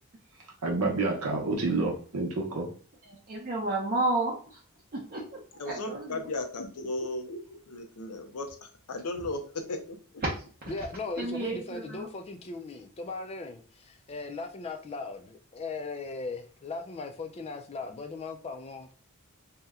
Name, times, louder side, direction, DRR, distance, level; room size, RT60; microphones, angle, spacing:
voice 1, 0.6-2.7, right 3 dB, 85° right, 0.7 m, -28 dB
voice 2, 3.1-4.6 4.9-6.2 10.6-10.7 11.2-12.1, right 2 dB, 45° right, 0.6 m, -32 dB
voice 3, 5.6-8.5 8.9-10.0, left 2 dB, 85° left, 0.6 m, -35 dB
voice 4, 10.7-18.9, left 3 dB, 30° left, 0.4 m, -38 dB
2.8 x 2.1 x 3.5 m
head